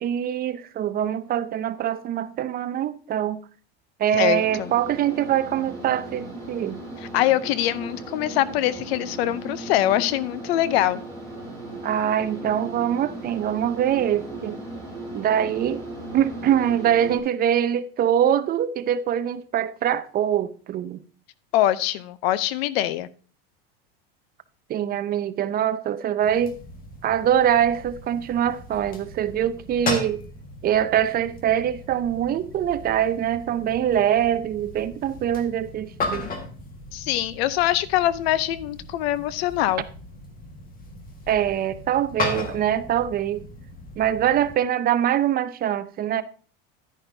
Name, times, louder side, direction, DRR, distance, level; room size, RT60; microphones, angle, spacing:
voice 1, 0.0-3.4 4.0-6.8 11.8-14.6 15.1-15.8 16.1-21.0 24.7-26.6 27.0-30.2 30.6-36.3 41.3-43.4 44.0-46.2, right 10 dB, 30° right, 0.5 m, -23 dB
voice 2, 4.1-4.7 7.0-11.0 21.5-23.1 36.9-39.8, left 13 dB, 80° left, 0.7 m, -23 dB
sound 1, 4.3-17.2, right 2 dB, 10° left, 3.2 m, -37 dB
sound 2, 26.2-44.5, left 2 dB, 30° left, 1.6 m, -36 dB
10.5 x 9.9 x 2.7 m
supercardioid pair, 130°, 31 cm